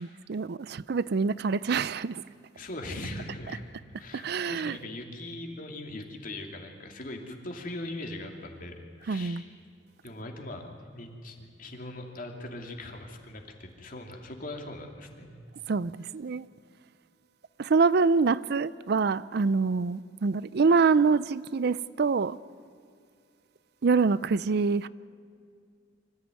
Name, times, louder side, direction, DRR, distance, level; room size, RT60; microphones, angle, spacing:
voice 1, 0.0-2.2 4.1-4.8 9.1-9.4 15.7-16.5 17.6-22.4 23.8-24.9, right 4 dB, 60° right, 0.5 m, -25 dB
voice 2, 2.5-3.6 3.9-9.5 10.0-10.7 10.9-15.3, left 1 dB, 45° left, 2.7 m, -40 dB
25.0 x 14.5 x 9.3 m
head